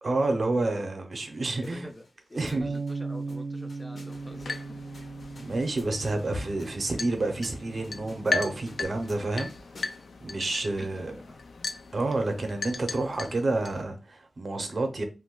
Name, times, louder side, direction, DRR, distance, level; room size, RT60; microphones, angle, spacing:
voice 1, 0.0-1.9 2.3-2.8 5.0-5.1 5.4-9.5 10.2-11.1 11.9-15.0, right 2 dB, 45° right, 0.6 m, -29 dB
sound 1, 1.1-10.2, left 2 dB, 55° left, 0.7 m, -49 dB
voice 2, 1.6-4.7 10.8-11.4, left 1 dB, 15° left, 0.4 m, -45 dB
Bass guitar, 2.6-8.9, right 3 dB, 85° right, 0.5 m, -38 dB
sound 2, 4.1-13.8, left 4 dB, 80° left, 0.3 m, -38 dB
2.5 x 2.3 x 3.6 m
wide cardioid pair, 145°, 0 cm